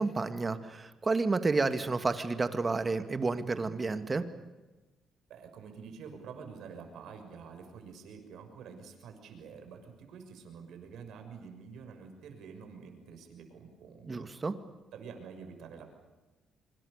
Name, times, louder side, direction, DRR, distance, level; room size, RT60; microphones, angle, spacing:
voice 1, 0.0-4.3 14.1-14.5, right 3 dB, 30° right, 9 dB, 2.3 m, -30 dB
voice 2, 5.3-14.3 14.9-15.9, right 6 dB, 80° right, 5 dB, 6.4 m, -48 dB
26.0 x 25.5 x 6.8 m, 1.1 s
cardioid pair, 90°, 0 cm